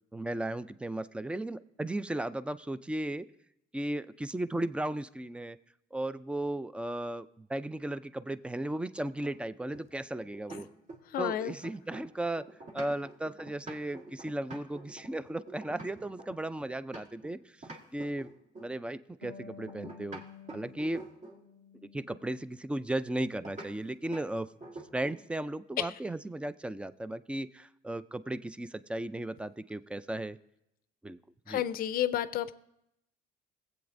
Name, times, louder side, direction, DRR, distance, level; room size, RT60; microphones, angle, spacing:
voice 1, 0.1-3.3 3.7-5.6 5.9-10.7 11.2-12.4 12.7-17.4 17.9-18.3 18.6-20.2 20.5-21.0 21.9-24.5 24.9-30.4 31.0-31.2 31.5-31.6, right 1 dB, 5° right, 15 dB, 0.3 m, -35 dB
sound 1, 9.2-11.2 11.5-17.3 17.6-18.8 19.7-21.5 23.4-23.7 24.1-24.3 24.6-25.3, right 2 dB, 45° right, 1.6 m, -47 dB
voice 2, 11.1-11.5 25.8-25.9 31.5-32.5, left 11 dB, 60° left, 15 dB, 0.5 m, -30 dB
Harp, 19.2-22.6 22.9-24.0, left 5 dB, 85° right, 3.5 m, -53 dB
21.5 x 8.0 x 2.6 m, 0.81 s
cardioid pair, 110°, 17 cm